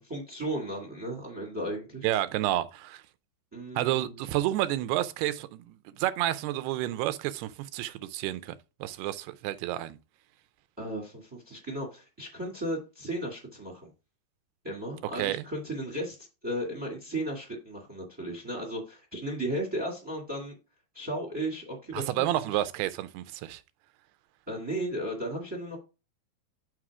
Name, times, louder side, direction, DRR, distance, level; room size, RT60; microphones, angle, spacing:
voice 1, 0.0-2.1 3.5-4.2 10.8-13.9 14.6-16.2 16.4-20.5 20.9-22.6 24.5-25.8, right 1 dB, 10° right, 1.1 m, -35 dB
voice 2, 2.0-3.0 3.8-8.6 8.8-10.0 15.2-15.4 21.9-23.6, right 14 dB, 85° right, 2.7 m, -30 dB
6.3 x 6.0 x 4.8 m
omnidirectional pair, 4.5 m